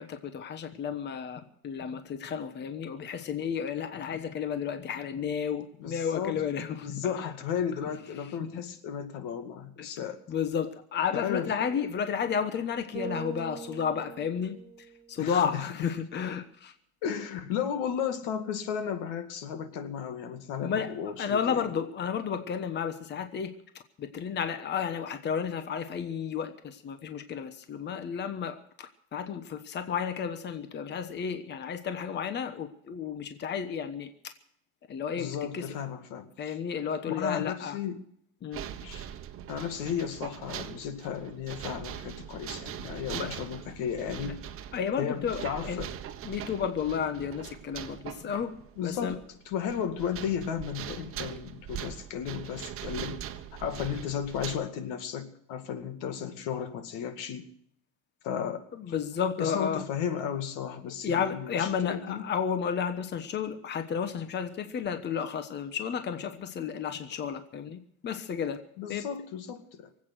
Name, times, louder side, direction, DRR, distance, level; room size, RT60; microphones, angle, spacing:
voice 1, 0.0-7.1 9.8-9.9 10.3-14.6 15.1-16.7 20.6-20.9 21.2-23.5 24.0-34.3 34.9-35.6 36.4-37.8 38.4-38.6 43.1-43.3 44.7-45.8 46.2-48.5 48.8-49.2 58.8-59.8 61.0-68.6 68.9-69.0, left 7 dB, 35° left, 9 dB, 1.1 m, -32 dB
voice 2, 5.8-6.4 6.7-10.2 11.1-11.8 15.2-15.7 17.0-21.7 35.2-36.6 37.1-38.0 38.8-39.1 39.5-44.4 45.0-45.9 48.8-49.2 49.5-57.5 58.2-58.9 59.4-62.2 68.8-70.0, left 8 dB, 80° left, 8 dB, 2.2 m, -34 dB
Bass guitar, 12.9-15.3, right 4 dB, 20° right, 1.1 m, -42 dB
sound 1, 38.5-54.6, right 10 dB, 45° right, 1.2 m, -41 dB
24.0 x 8.6 x 6.3 m, 0.71 s
cardioid pair, 145°, 32 cm